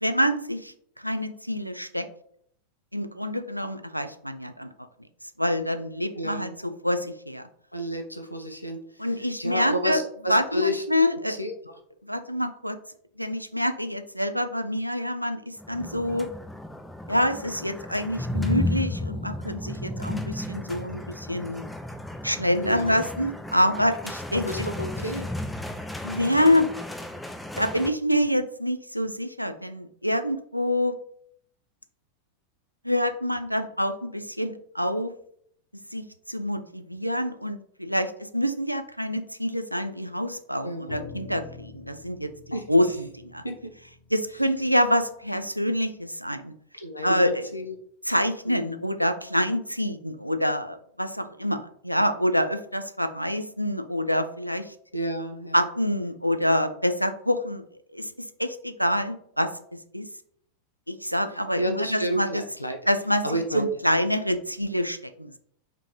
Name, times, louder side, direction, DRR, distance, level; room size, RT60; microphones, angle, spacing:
voice 1, 0.0-2.1 2.9-4.7 5.4-7.4 9.0-10.0 10.3-11.3 12.0-12.8 13.2-16.3 17.1-21.7 22.2-24.7 26.0-26.7 27.6-30.9 32.8-35.1 35.9-42.3 42.7-43.4 44.1-46.5 47.0-47.4 48.1-51.6 51.8-54.7 55.5-57.6 57.9-58.1 58.4-59.5 59.9-60.1 60.9-62.4 62.9-63.2 63.5-65.4, equal, 90° right, 8 dB, 0.3 m, -26 dB
voice 2, 6.2-6.7 7.7-10.8 11.3-11.7 22.6-23.0 24.3-25.3 40.6-41.0 42.5-42.6 43.4-43.5 46.7-47.7 48.5-48.8 54.9-55.7 61.6-62.8 63.2-63.8, right 1 dB, 85° left, 4 dB, 0.5 m, -31 dB
sound 1, 15.6-27.9, left 1 dB, 5° left, 0.4 m, -33 dB
sound 2, 40.9-45.4, left 4 dB, 40° left, 1.1 m, -46 dB
3.6 x 3.6 x 2.9 m, 0.66 s
figure-of-eight pair, 90°, 0 cm